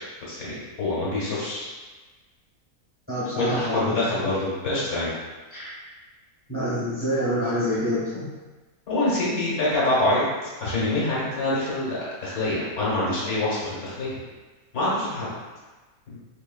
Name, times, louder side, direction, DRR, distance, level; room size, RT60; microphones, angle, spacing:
voice 1, 0.3-1.7 3.4-5.1 8.9-14.2 14.7-15.3, left 2 dB, 65° left, -7 dB, 1.7 m, -25 dB
voice 2, 3.1-4.3 5.5-5.7 6.5-8.3, equal, 10° right, -8 dB, 0.9 m, -27 dB
4.2 x 3.3 x 2.3 m, 1.3 s
omnidirectional pair, 1.6 m